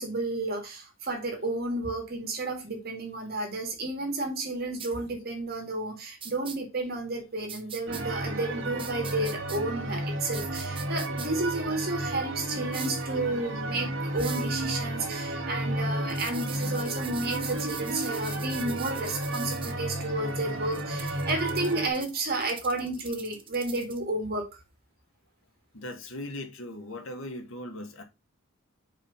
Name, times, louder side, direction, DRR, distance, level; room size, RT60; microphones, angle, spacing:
voice 1, 0.0-24.5, right 2 dB, 45° right, 2.0 m, -32 dB
sound 1, 4.8-4.9 6.2-6.6 7.5-8.0 8.8-9.6 10.3-11.3 12.7-13.0 14.2-14.5 16.1-19.7 20.7-24.0, right 7 dB, 25° right, 0.8 m, -42 dB
sound 2, 7.9-21.9, right 1 dB, 65° right, 1.7 m, -32 dB
voice 2, 25.7-28.0, left 1 dB, 70° left, 1.6 m, -39 dB
4.9 x 4.2 x 5.5 m
head